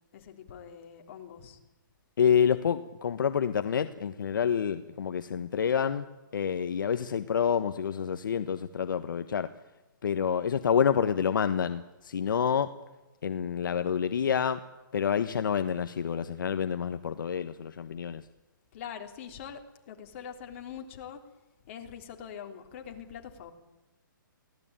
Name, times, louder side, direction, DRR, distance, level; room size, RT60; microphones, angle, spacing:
voice 1, 0.1-1.6 18.7-21.2 21.6-23.5, left 8 dB, 35° left, 4 dB, 3.5 m, -43 dB
voice 2, 2.2-6.1 6.3-9.5 10.0-12.7 13.2-14.6 14.9-18.2, left 7 dB, 70° left, 10 dB, 1.3 m, -28 dB
23.5 x 17.0 x 9.0 m, 1.1 s
hypercardioid pair, 160°, 11 cm